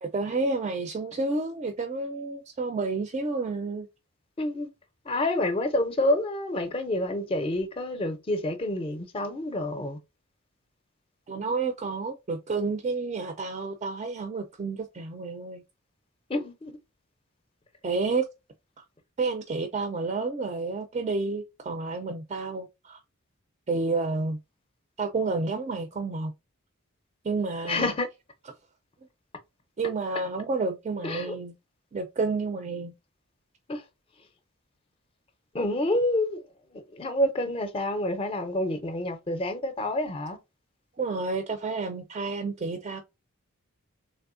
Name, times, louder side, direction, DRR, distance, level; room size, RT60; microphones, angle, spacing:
voice 1, 0.0-3.9 11.3-15.6 17.8-18.3 19.2-23.0 23.7-24.4 25.0-26.3 27.2-27.9 29.8-31.5 31.9-32.9 41.0-43.0, right 3 dB, 30° right, 0.3 m, -30 dB
voice 2, 4.4-4.7 5.1-10.0 16.3-16.7 27.7-28.1 31.0-31.3 33.7-33.8 35.5-36.4 36.7-40.4, left 1 dB, 25° left, 0.5 m, -28 dB
3.4 x 2.9 x 2.4 m
head